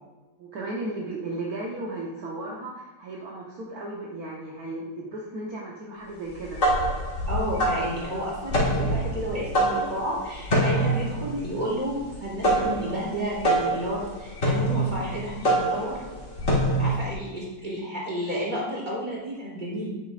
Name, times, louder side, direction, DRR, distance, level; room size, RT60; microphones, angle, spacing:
voice 1, 0.4-6.6, right 2 dB, 60° right, -3 dB, 1.5 m, -35 dB
sound 1, 6.3-17.1, right 1 dB, 45° left, 2.2 m, -25 dB
voice 2, 7.2-16.0 16.8-19.9, equal, 25° right, -6 dB, 3.4 m, -31 dB
9.9 x 9.2 x 2.5 m, 1.2 s
omnidirectional pair, 1.8 m